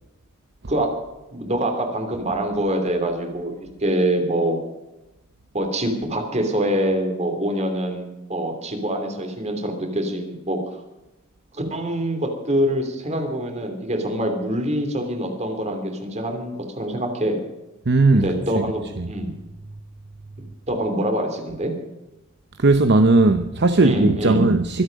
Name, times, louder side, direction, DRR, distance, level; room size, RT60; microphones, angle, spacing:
voice 1, 1.3-4.6 5.5-10.6 11.5-17.4 18.1-19.3 20.7-21.7 23.8-24.5, right 1 dB, 30° right, 3.0 m, -25 dB
voice 2, 17.9-18.6 19.0-19.1 22.6-24.8, right 2 dB, 50° right, 0.8 m, -17 dB
24.5 x 8.4 x 5.2 m
head